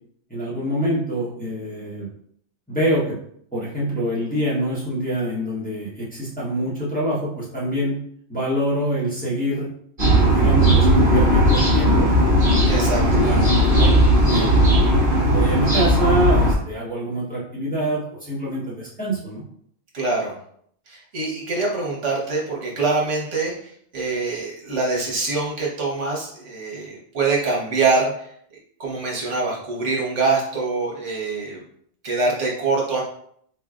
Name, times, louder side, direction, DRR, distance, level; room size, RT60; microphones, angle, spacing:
voice 1, 0.3-2.1 2.7-3.2 3.5-8.0 8.3-9.7 10.3-12.1 12.7-14.6 15.0-19.4, equal, 10° left, -8 dB, 1.0 m, -25 dB
sound 1, 10.0-16.5, equal, 50° right, 1.4 m, -16 dB
voice 2, 12.7-13.2 19.9-20.3 20.9-28.3 28.8-31.6 32.0-33.0, right 3 dB, 80° right, -3 dB, 1.3 m, -24 dB
3.9 x 3.2 x 2.4 m, 0.65 s
omnidirectional pair, 1.2 m